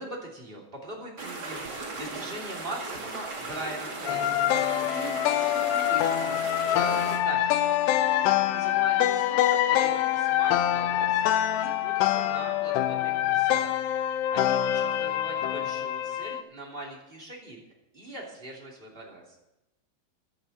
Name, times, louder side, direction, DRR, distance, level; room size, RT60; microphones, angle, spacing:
voice 1, 0.0-4.5 4.9-7.7 8.1-8.2 8.5-11.2 11.6-13.8 14.3-17.6 17.9-19.4, right 1 dB, 15° right, -2 dB, 2.1 m, -41 dB
sound 1, 1.2-7.2, right 3 dB, 40° right, 1.5 m, -37 dB
sound 2, 4.1-16.4, left 12 dB, 85° left, 2.4 m, -25 dB
16.0 x 11.5 x 4.3 m, 0.92 s
omnidirectional pair, 5.5 m